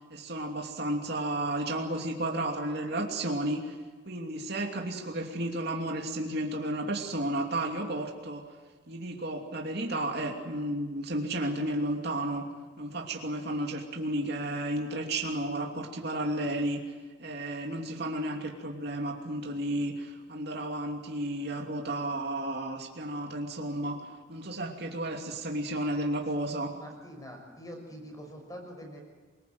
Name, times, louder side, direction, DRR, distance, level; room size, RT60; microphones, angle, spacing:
voice 1, 0.1-3.7 4.1-8.4 8.9-12.5 12.8-16.8 17.2-24.0 24.3-26.7, right 1 dB, 55° right, 1 dB, 2.9 m, -32 dB
voice 2, 26.8-29.0, equal, 20° left, 2 dB, 6.3 m, -44 dB
27.5 x 20.0 x 8.0 m, 1.4 s
head